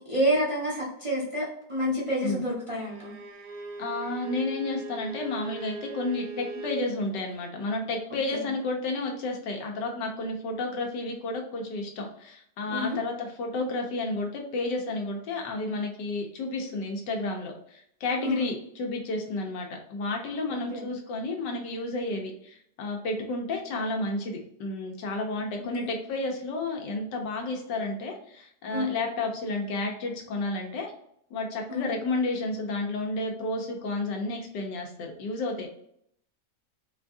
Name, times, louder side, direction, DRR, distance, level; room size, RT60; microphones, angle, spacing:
voice 1, 0.1-3.2 8.3-8.4 12.7-13.0 18.2-18.5 20.5-20.9 25.6-25.9 28.7-28.9 31.7-31.9, equal, 25° right, -6 dB, 0.8 m, -29 dB
Bowed string instrument, 2.8-6.9, right 3 dB, 70° right, 1.0 m, -40 dB
voice 2, 3.8-30.9 31.3-35.7, left 2 dB, 85° left, 2 dB, 1.5 m, -31 dB
4.4 x 2.3 x 2.6 m, 0.70 s
omnidirectional pair, 1.8 m